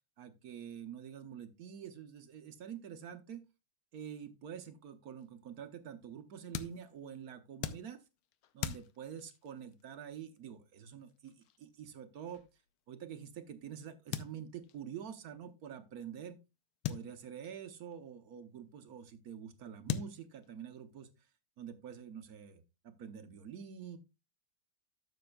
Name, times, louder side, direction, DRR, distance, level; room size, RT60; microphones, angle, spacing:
voice 1, 0.2-3.4 3.9-8.0 8.5-12.4 12.9-16.4 16.9-21.1 21.6-24.0, right 8 dB, 60° right, 8 dB, 1.1 m, -47 dB
sound 1, 5.2-13.5 14.1-14.9 15.1-15.2 15.4-15.5 16.8-18.0 19.1-19.2 19.9-20.8, left 10 dB, 85° left, 1.6 m, -43 dB
13.0 x 6.8 x 2.3 m, 0.25 s
omnidirectional pair, 2.3 m